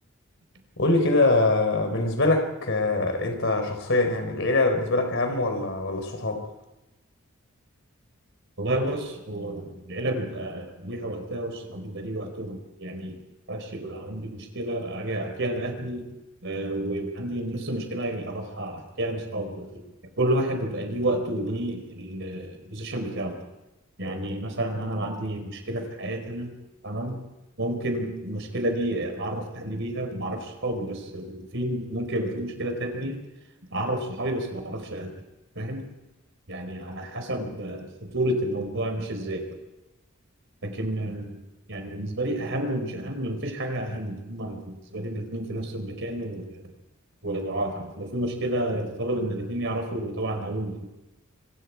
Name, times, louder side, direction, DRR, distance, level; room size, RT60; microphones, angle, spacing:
voice 1, 0.8-6.5, left 2 dB, 60° left, 4.0 m, -23 dB
voice 2, 8.6-13.2 13.5-16.0 16.4-19.9 20.2-23.4 24.0-26.5 26.8-27.2 27.6-33.2 33.7-35.2 35.6-35.9 36.5-39.5 40.6-41.4 41.7-46.6 47.2-50.9, right 1 dB, 60° right, 4.5 m, -30 dB
25.5 x 25.0 x 4.7 m
head